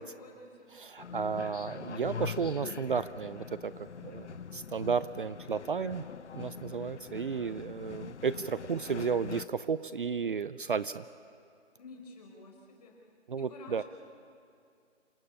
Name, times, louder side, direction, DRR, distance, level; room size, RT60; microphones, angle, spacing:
voice 1, 0.0-0.7 11.8-13.0 13.4-13.8, left 2 dB, 35° left, 0 dB, 5.3 m, -50 dB
voice 2, 0.8-4.3 4.5-6.0 6.3-11.0 13.3-13.8, right 6 dB, 50° right, 15 dB, 0.6 m, -33 dB
sound 1, 1.0-9.4, left 6 dB, 75° left, 1.1 m, -43 dB
28.0 x 18.0 x 8.8 m, 2.3 s
hypercardioid pair, 170°, 35 cm